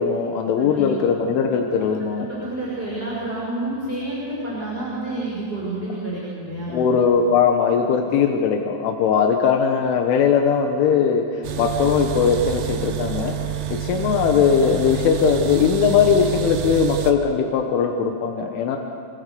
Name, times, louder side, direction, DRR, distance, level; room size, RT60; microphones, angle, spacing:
voice 1, 0.0-2.3 6.7-13.4 13.7-18.8, left 6 dB, 85° left, 3 dB, 3.9 m, -19 dB
voice 2, 0.6-1.1 1.8-1.9 2.2-6.8, right 1 dB, 10° right, -6 dB, 6.1 m, -29 dB
sound 1, 11.4-17.1, right 10 dB, 70° right, 3.6 m, -28 dB
27.5 x 27.0 x 7.0 m, 2.6 s
omnidirectional pair, 5.5 m